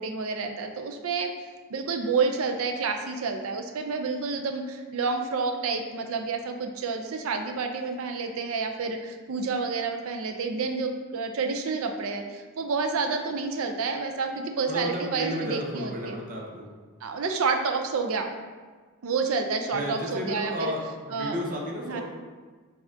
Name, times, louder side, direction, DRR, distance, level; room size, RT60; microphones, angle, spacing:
voice 1, 0.0-1.3 1.7-16.2 17.0-18.3 19.0-20.7 21.1-21.4 21.9-22.0, right 4 dB, 70° right, 5 dB, 0.4 m, -29 dB
voice 2, 14.7-16.7 19.7-22.0, equal, 40° right, -1 dB, 0.7 m, -32 dB
7.0 x 2.4 x 2.7 m, 1.4 s
head